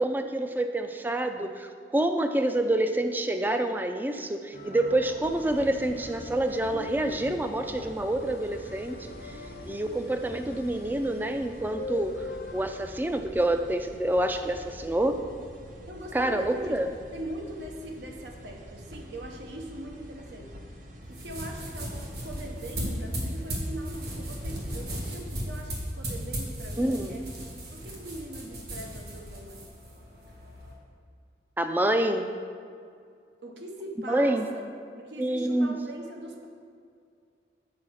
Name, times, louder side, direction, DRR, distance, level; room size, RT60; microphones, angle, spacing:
voice 1, 0.0-9.4 9.7-12.2 12.5-15.2 16.1-16.9 26.8-27.2 31.6-32.3 34.1-34.5 35.2-35.7, right 1 dB, 10° right, 7 dB, 0.3 m, -27 dB
sound 1, 4.5-12.7, left 3 dB, 60° left, 0.6 m, -42 dB
sound 2, 5.2-25.1, equal, 45° right, 0.8 m, -47 dB
voice 2, 15.9-16.8 17.1-20.5 21.1-27.3 27.7-29.6 33.4-34.7 35.0-36.5, right 1 dB, 80° right, 2 dB, 0.9 m, -41 dB
sound 3, 21.0-30.7, equal, 60° right, 1.7 m, -36 dB
7.4 x 4.7 x 6.3 m, 2.3 s
head